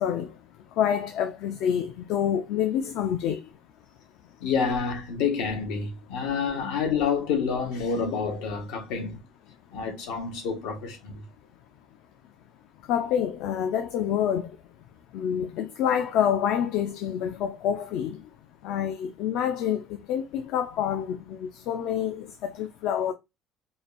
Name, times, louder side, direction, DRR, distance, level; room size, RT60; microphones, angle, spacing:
voice 1, 0.8-3.4 12.9-14.5 15.1-18.2 18.6-23.1, left 9 dB, 65° left, 0.4 m, -27 dB
voice 2, 4.4-9.2 9.7-11.1, left 6 dB, 80° left, 1.2 m, -28 dB
5.0 x 2.6 x 2.5 m
cardioid pair, 155°, 0 cm